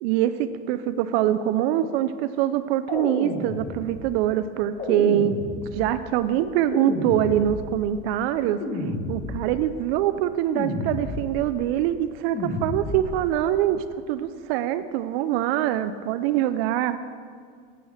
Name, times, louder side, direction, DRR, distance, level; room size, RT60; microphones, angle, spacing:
voice 1, 0.0-8.6 9.1-12.3 12.6-17.0, right 11 dB, 75° right, 11 dB, 0.4 m, -24 dB
sound 1, 2.9-4.1 4.8-6.0 6.7-7.8 8.6-9.6 10.5-11.5 12.3-13.2, left 1 dB, 25° left, 1.6 m, -31 dB
7.7 x 6.2 x 4.8 m, 2.1 s
supercardioid pair, 135°, 30 cm